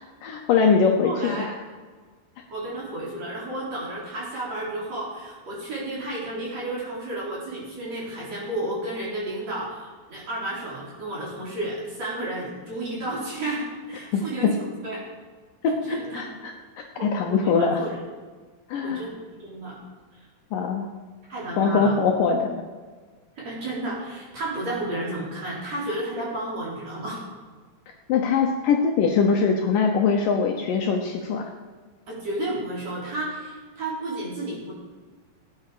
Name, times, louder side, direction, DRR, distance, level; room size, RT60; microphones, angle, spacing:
voice 1, 0.2-1.5 14.1-14.5 15.6-16.5 16.8-17.8 18.7-19.0 20.5-20.9 21.6-22.6 28.1-31.5, left 5 dB, 70° left, 2 dB, 2.2 m, -22 dB
voice 2, 1.0-1.5 2.5-15.0 15.8-16.2 17.0-18.0 18.8-19.8 21.3-21.9 23.4-27.2 32.1-34.7, right 1 dB, 40° right, -6 dB, 4.6 m, -32 dB
17.5 x 9.3 x 4.9 m, 1.4 s
omnidirectional pair, 4.6 m